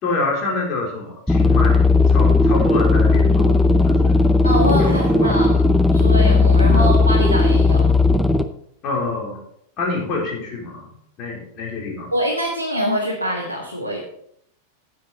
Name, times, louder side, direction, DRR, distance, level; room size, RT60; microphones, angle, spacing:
voice 1, 0.0-3.6 3.9-4.2 4.8-5.4 6.7-6.9 8.8-9.4 9.8-10.9 11.2-12.1, left 3 dB, 35° left, -2 dB, 3.9 m, -26 dB
sound 1, 1.3-8.4, left 3 dB, 5° left, 0.7 m, -15 dB
voice 2, 4.4-5.6 5.9-7.9 12.1-14.0, equal, 90° left, -2 dB, 1.6 m, -24 dB
10.0 x 8.6 x 4.2 m, 0.72 s
figure-of-eight pair, 90°, 0 cm